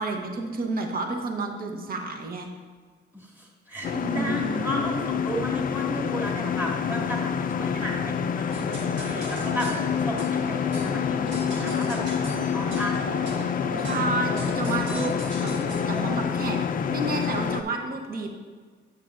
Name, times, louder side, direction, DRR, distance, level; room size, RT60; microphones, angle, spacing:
voice 1, 0.0-2.5 3.9-4.6 13.8-15.1 15.4-15.5 15.9-16.6 16.9-18.3, right 3 dB, 50° right, 3 dB, 1.0 m, -30 dB
voice 2, 3.1-13.0 13.6-14.0, equal, 10° right, -3 dB, 2.1 m, -34 dB
sound 1, 3.8-17.6, left 7 dB, 45° left, 0.4 m, -27 dB
sound 2, 8.5-16.1, equal, 70° right, 1.6 m, -37 dB
9.0 x 7.4 x 2.6 m, 1.5 s
cardioid pair, 90°, 20 cm